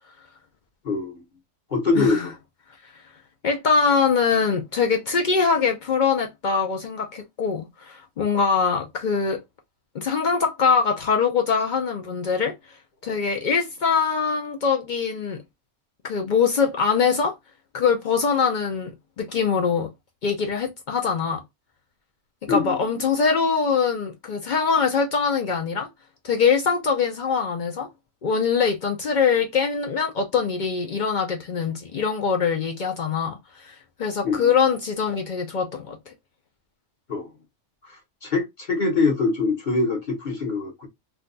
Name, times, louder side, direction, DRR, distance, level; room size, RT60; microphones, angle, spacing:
voice 1, 0.8-1.2 1.7-2.3 22.5-22.8 34.2-34.5 37.1-37.3 37.9-40.9, left 3 dB, 40° left, 0.8 m, -24 dB
voice 2, 2.0-2.3 3.4-9.4 9.9-12.5 13.0-15.4 16.0-17.4 17.7-18.9 19.2-19.9 20.2-21.4 22.5-25.9 26.2-27.9 28.2-36.1, left 5 dB, 65° left, 0.4 m, -23 dB
2.6 x 2.2 x 3.8 m
omnidirectional pair, 1.4 m